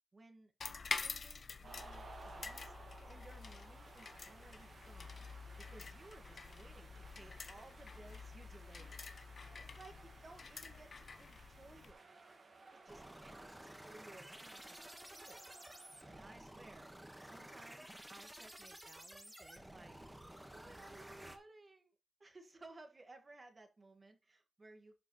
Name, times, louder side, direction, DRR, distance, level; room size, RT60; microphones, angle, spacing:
voice 1, 0.1-0.5 1.0-5.3 5.6-9.0 9.3-12.1 12.7-14.8 15.1-15.5 16.1-16.9 17.2-20.0 20.5-22.0 22.2-25.0, right 2 dB, 40° right, 1.9 m, -59 dB
sound 1, 0.6-11.9, left 5 dB, 60° left, 0.9 m, -48 dB
sound 2, 1.6-16.3, right 3 dB, 60° right, 1.9 m, -58 dB
sound 3, 12.9-21.4, right 1 dB, 10° right, 1.6 m, -53 dB
11.5 x 5.5 x 3.2 m
cardioid pair, 80°, 0 cm